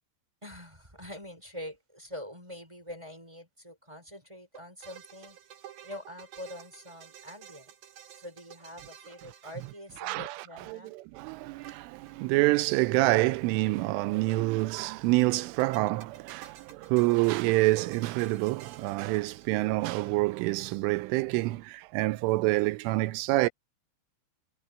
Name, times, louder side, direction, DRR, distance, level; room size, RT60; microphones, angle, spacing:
voice 1, 0.4-5.4 5.8-7.7 8.1-10.9, left 1 dB, 5° right, 5.1 m, -45 dB
sound 1, 4.5-10.3 11.6-12.5 12.7-12.8 13.0-13.1 15.3-19.8, right 10 dB, 55° right, 3.1 m, -51 dB
voice 2, 10.0-23.5, right 20 dB, 90° right, 3.3 m, -27 dB
omnidirectional pair, 5.5 m